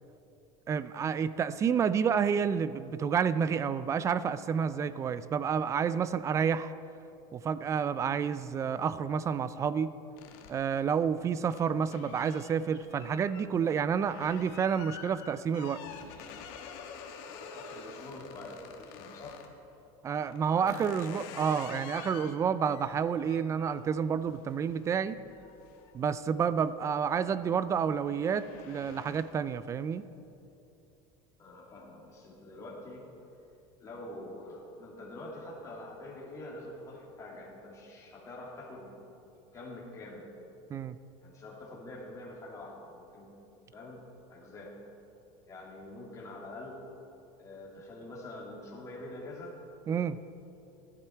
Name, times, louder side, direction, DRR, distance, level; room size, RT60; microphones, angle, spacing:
voice 1, 0.7-6.7 7.3-10.0 10.5-15.8 20.0-25.2 25.9-30.0 40.7-41.0 49.9-50.2, right 7 dB, 20° right, 15 dB, 0.3 m, -29 dB
sound 1, 10.2-19.5 20.1-26.6 27.0-27.4 27.7-29.5, left 7 dB, 65° left, 1.4 m, -49 dB
voice 2, 17.4-19.4 20.5-21.2 31.4-33.1 33.8-38.9 39.5-40.3 41.2-43.3 43.7-44.0 44.3-44.8 45.5-46.8 47.4-49.6, left 1 dB, 25° left, -4 dB, 2.8 m, -45 dB
15.5 x 11.0 x 4.5 m, 2.7 s
cardioid pair, 150°, 14 cm